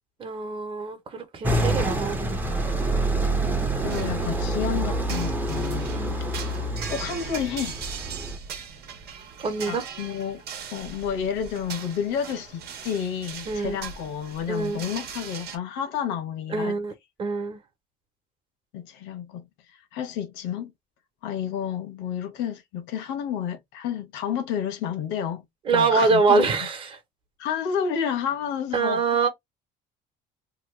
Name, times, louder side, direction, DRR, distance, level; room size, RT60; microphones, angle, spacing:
voice 1, 0.2-2.6 5.9-6.2 9.4-9.8 13.5-13.8 14.5-14.8 16.5-16.9 17.2-17.6 25.6-27.0 28.7-29.3, right 4 dB, 30° right, 1.0 m, -25 dB
sound 1, 1.4-8.4, right 2 dB, 10° right, 0.6 m, -27 dB
voice 2, 3.4-6.3 6.9-7.8 9.7-10.4 10.7-16.7 18.7-20.7 21.2-25.4 25.7-26.5 27.4-29.2, left 8 dB, 85° left, 1.1 m, -30 dB
sound 2, 3.9-15.6, right 7 dB, 60° right, 1.0 m, -40 dB
3.0 x 2.3 x 3.2 m
cardioid pair, 135°, 19 cm